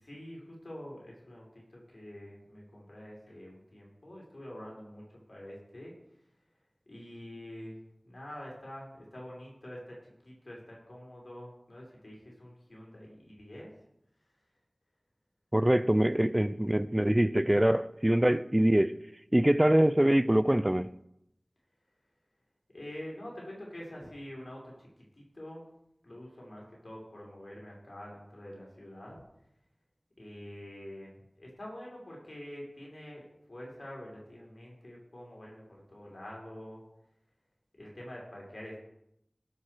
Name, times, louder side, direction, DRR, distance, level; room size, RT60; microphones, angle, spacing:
voice 1, 0.0-6.0 6.9-7.8 8.0-13.7 22.7-24.9 25.1-25.7 26.0-29.2 30.2-33.2 33.5-36.8 37.8-38.8, left 1 dB, 65° left, 5.5 m, -46 dB
voice 2, 15.5-19.0 19.3-20.9, right 1 dB, 20° right, 0.5 m, -24 dB
17.0 x 5.9 x 6.6 m
wide cardioid pair, 40°, 0 cm